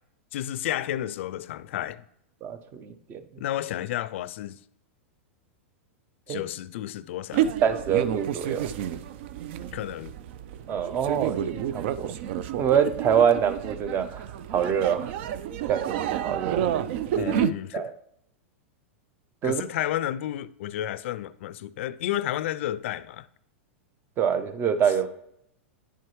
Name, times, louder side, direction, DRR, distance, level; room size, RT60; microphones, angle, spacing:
voice 1, 0.3-2.0 3.4-4.6 6.3-7.5 9.7-10.1 17.1-17.9 19.4-23.3, left 12 dB, 65° left, 0.4 m, -31 dB
voice 2, 2.4-3.2 6.3-6.4 7.6-8.7 10.7-12.1 12.6-15.1 15.7-16.6 17.2-17.4 17.7-17.9 19.4-19.6 24.2-25.1, right 8 dB, 30° right, 0.7 m, -25 dB
sound 1, 7.3-17.5, right 10 dB, 60° right, 0.4 m, -30 dB
10.0 x 4.6 x 3.1 m
hypercardioid pair, 115°, 7 cm